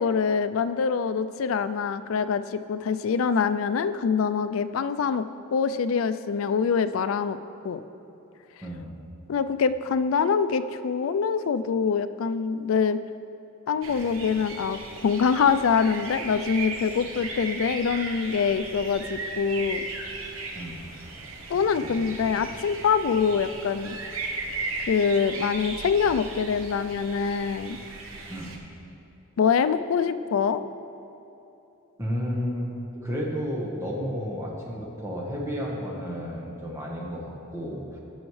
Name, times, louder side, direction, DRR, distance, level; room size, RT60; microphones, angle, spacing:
voice 1, 0.0-5.2 5.5-7.4 7.6-7.8 9.3-13.0 13.7-19.8 21.5-24.0 24.9-27.8 29.4-30.6, left 6 dB, 75° left, 12 dB, 0.4 m, -24 dB
voice 2, 8.6-9.0 20.5-20.9 21.8-22.1 28.3-28.6 32.0-38.0, equal, 15° right, -3 dB, 1.3 m, -32 dB
sound 1, 13.8-28.6, right 3 dB, 80° right, 1.1 m, -37 dB
16.5 x 6.3 x 3.2 m, 3.0 s
head